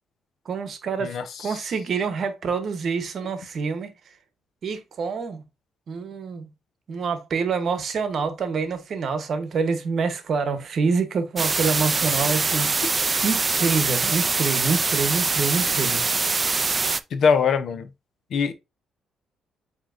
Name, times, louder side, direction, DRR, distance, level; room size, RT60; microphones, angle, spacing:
voice 1, 0.4-3.9 4.6-5.4 5.9-6.5 6.9-16.0, right 5 dB, 55° right, 0.9 m, -26 dB
sound 1, 11.4-17.0, right 4 dB, 30° right, 0.3 m, -23 dB
voice 2, 17.1-17.9 18.3-18.5, left 6 dB, 65° left, 0.6 m, -21 dB
7.3 x 2.9 x 2.5 m
cardioid pair, 90°, 0 cm